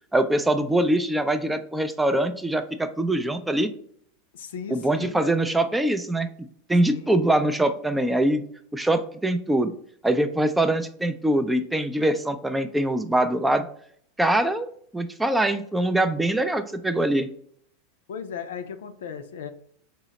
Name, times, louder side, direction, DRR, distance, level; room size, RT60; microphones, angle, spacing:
voice 1, 0.1-3.7 4.7-6.3 6.7-8.4 8.7-9.7 10.0-13.7 14.2-17.3, right 1 dB, 5° right, 10 dB, 0.3 m, -23 dB
voice 2, 4.3-5.3 6.8-7.1 18.1-19.5, left 7 dB, 85° left, 9 dB, 0.4 m, -36 dB
3.7 x 2.1 x 4.0 m, 0.62 s
hypercardioid pair, 115°, 0 cm